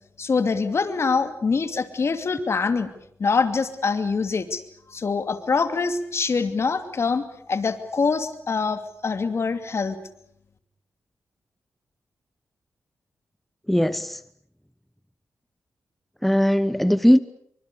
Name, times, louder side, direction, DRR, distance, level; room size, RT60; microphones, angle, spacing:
voice 1, 0.2-2.9 3.2-4.6 4.9-7.2 7.5-10.0, left 4 dB, 50° left, 2.7 m, -24 dB
voice 2, 13.7-14.2 16.2-17.2, equal, ahead, 1.0 m, -19 dB
26.5 x 24.0 x 7.0 m
cardioid pair, 70°, 6 cm